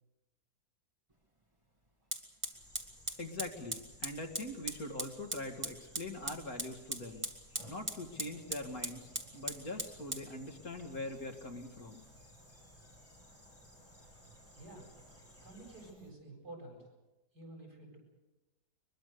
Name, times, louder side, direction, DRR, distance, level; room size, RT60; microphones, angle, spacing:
Fire, 1.1-1.2 2.1-16.1, right 1 dB, 20° right, 2.3 m, -44 dB
sound 1, 2.5-15.9, equal, 10° left, 4.7 m, -59 dB
voice 1, 3.2-7.3 7.6-12.1, left 1 dB, 60° left, 3 dB, 2.7 m, -43 dB
voice 2, 14.5-14.9 15.4-16.9 17.3-18.0, right 2 dB, 75° right, 0 dB, 8.5 m, -50 dB
23.5 x 22.5 x 6.8 m, 1.0 s
omnidirectional pair, 1.8 m